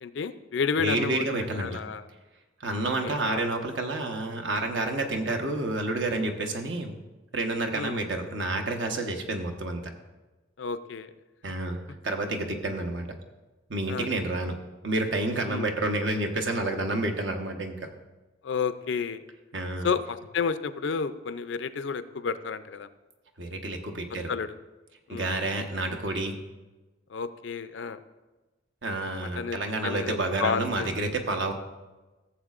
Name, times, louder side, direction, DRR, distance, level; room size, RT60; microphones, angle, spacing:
voice 1, 0.0-1.3 1.6-2.1 2.8-3.4 7.7-8.0 10.6-11.1 13.9-14.1 15.4-15.7 18.4-19.2 19.8-22.9 24.3-24.6 25.1-25.3 27.1-28.0 29.4-29.6 29.8-30.9, left 5 dB, 70° left, 12 dB, 0.4 m, -31 dB
voice 2, 0.8-1.8 2.6-6.9 7.3-9.8 11.4-13.1 13.7-14.6 14.8-17.9 19.5-19.9 23.4-24.3 25.1-26.3 28.8-31.5, right 2 dB, 70° right, 4 dB, 1.0 m, -29 dB
14.5 x 7.3 x 2.4 m, 1.1 s
head